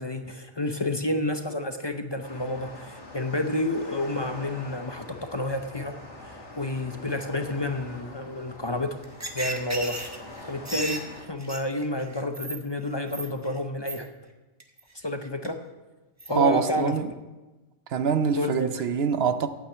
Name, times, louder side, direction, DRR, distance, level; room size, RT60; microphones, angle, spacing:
voice 1, 0.0-6.0 6.2-9.0 9.3-10.0 10.5-14.1 15.0-15.6 16.3-16.9 18.3-18.7, left 1 dB, 30° left, 0.6 m, -30 dB
sound 1, 2.2-11.2, left 2 dB, 90° left, 2.2 m, -44 dB
sound 2, 9.0-12.6 12.9-13.6 13.9-14.0 14.6-14.8 15.2-15.5 16.2-16.3 16.6-16.9, right 1 dB, 15° right, 1.0 m, -34 dB
voice 2, 16.3-17.1 17.9-19.5, right 6 dB, 65° right, 0.9 m, -24 dB
8.7 x 8.7 x 8.0 m
omnidirectional pair, 1.2 m